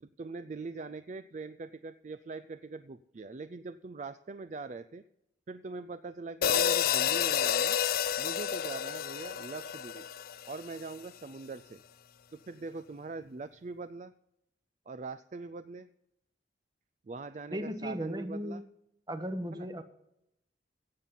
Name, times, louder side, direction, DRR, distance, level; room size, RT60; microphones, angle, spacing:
voice 1, 0.0-5.0 5.5-7.8 8.2-10.1 10.5-11.8 12.3-14.1 14.9-15.9 17.1-18.6 19.5-19.7, right 3 dB, 40° right, 12 dB, 0.4 m, -42 dB
sound 1, 6.4-10.8, left 9 dB, 50° left, 0.4 m, -30 dB
voice 2, 17.5-18.6 19.1-19.8, equal, 20° right, 9 dB, 1.0 m, -36 dB
16.5 x 7.4 x 5.6 m, 0.82 s
head